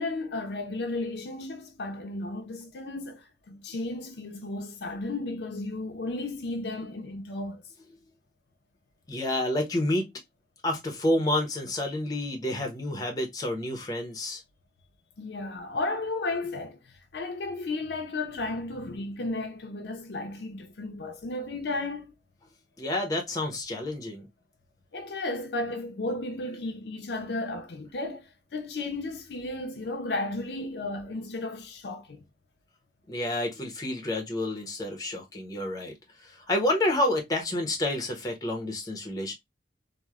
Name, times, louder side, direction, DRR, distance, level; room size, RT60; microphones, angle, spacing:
voice 1, 0.0-7.6 15.2-22.1 24.9-32.2, left 2 dB, 70° left, 0.5 m, -34 dB
voice 2, 9.1-10.1 10.6-14.4 22.8-24.3 33.1-35.9 36.2-39.3, left 1 dB, 20° left, 0.6 m, -29 dB
3.0 x 2.1 x 2.2 m
head